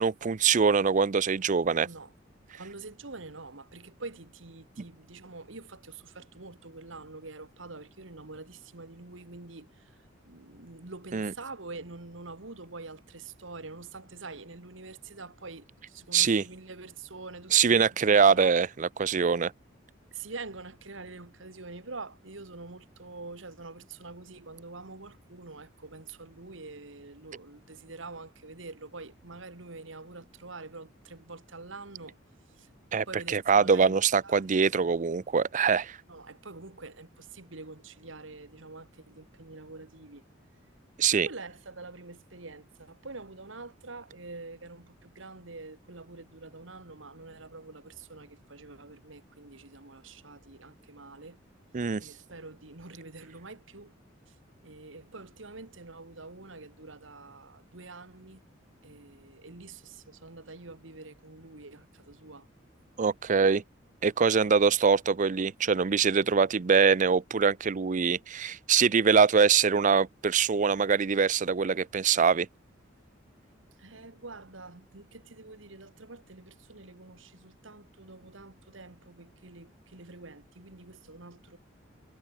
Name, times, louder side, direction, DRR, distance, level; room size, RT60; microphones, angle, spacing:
voice 1, 0.0-1.9 11.1-11.3 16.1-16.4 17.5-19.5 32.9-36.0 41.0-41.3 51.7-52.0 63.0-63.6 64.0-72.5, right 6 dB, 40° right, 0.5 m, -23 dB
voice 2, 2.5-18.6 20.1-32.2 32.5-34.6 36.1-40.2 41.2-51.4 52.0-53.9 54.3-54.4 54.6-58.4 58.8-62.5 73.8-81.6, right 3 dB, 80° right, 2.1 m, -46 dB
head